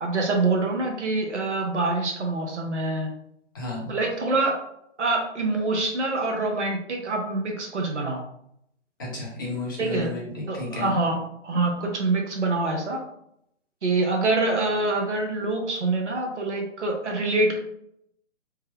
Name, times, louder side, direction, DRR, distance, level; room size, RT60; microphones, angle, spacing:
voice 1, 0.0-3.1 3.9-4.6 5.0-8.2 9.8-10.1 10.5-13.0 13.8-17.6, right 2 dB, 70° right, 2 dB, 0.8 m, -25 dB
voice 2, 3.5-3.9 9.0-10.2 10.5-10.9, left 2 dB, 20° left, -4 dB, 0.6 m, -32 dB
3.4 x 2.1 x 3.3 m, 0.74 s
figure-of-eight pair, 135°, 37 cm